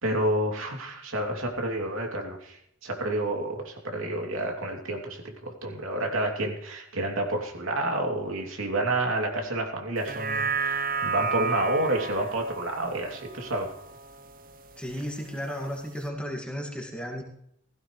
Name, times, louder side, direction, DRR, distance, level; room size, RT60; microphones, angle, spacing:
voice 1, 0.0-13.7, right 1 dB, 75° right, 1 dB, 3.0 m, -29 dB
sound 1, 10.0-14.5 14.9-15.0, right 5 dB, 45° right, 0.8 m, -32 dB
voice 2, 14.8-17.2, equal, 5° left, 0 dB, 2.2 m, -34 dB
16.5 x 16.0 x 3.3 m, 0.72 s
head